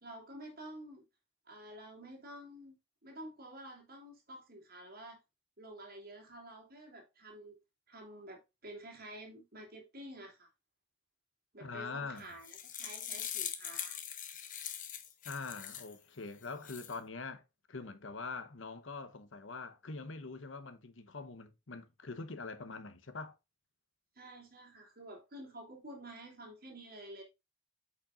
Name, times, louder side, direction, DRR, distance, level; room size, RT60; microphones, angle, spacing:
voice 1, 0.0-1.0 1.5-2.8 3.0-5.2 5.6-7.6 7.9-10.5 11.5-14.0 24.1-27.2, right 1 dB, 50° right, 2.9 m, -50 dB
voice 2, 11.6-12.3 15.2-17.4 17.7-23.4, left 4 dB, 80° left, 1.0 m, -44 dB
sound 1, 12.2-16.0 16.4-17.0, left 9 dB, 45° left, 1.0 m, -42 dB
8.7 x 5.4 x 2.5 m
head